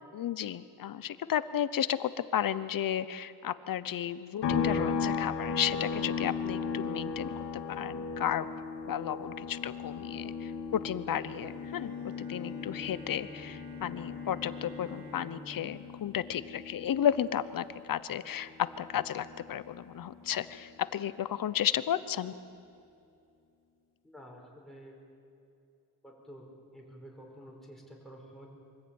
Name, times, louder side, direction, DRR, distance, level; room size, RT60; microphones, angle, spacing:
voice 1, 0.0-7.3 7.7-8.5 8.9-18.5 18.8-22.3, left 10 dB, 55° left, 14 dB, 0.8 m, -33 dB
sound 1, 4.4-18.0 18.3-20.5, left 5 dB, 80° left, 2.7 m, -37 dB
Bowed string instrument, 11.2-17.1, left 1 dB, 50° right, 6.5 m, -49 dB
voice 2, 24.0-25.0 26.0-28.5, equal, ahead, -2 dB, 5.2 m, -50 dB
24.5 x 14.5 x 8.8 m, 2.6 s
cardioid pair, 120°, 41 cm